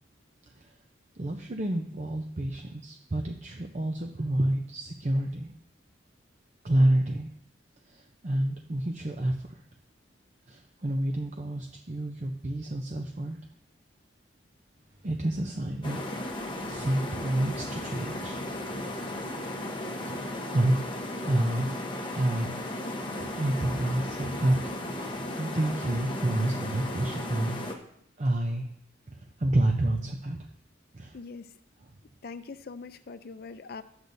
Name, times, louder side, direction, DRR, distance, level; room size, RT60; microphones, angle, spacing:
voice 1, 1.1-5.5 6.6-7.3 7.9-9.6 10.5-13.4 15.0-16.0 16.7-18.4 20.5-20.8 21.2-21.7 22.1-22.5 23.2-24.6 24.9-27.5 28.2-28.7 29.1-30.4 30.9-31.2, right 1 dB, 40° right, 3 dB, 0.7 m, -29 dB
Motorcycle, 14.7-20.7, equal, 75° right, 3.4 m, -54 dB
sound 1, 15.8-27.8, left 1 dB, 25° left, 1.0 m, -35 dB
voice 2, 31.1-31.5 32.2-33.8, left 4 dB, 55° left, 10 dB, 0.5 m, -42 dB
12.0 x 7.9 x 2.7 m, 0.70 s
head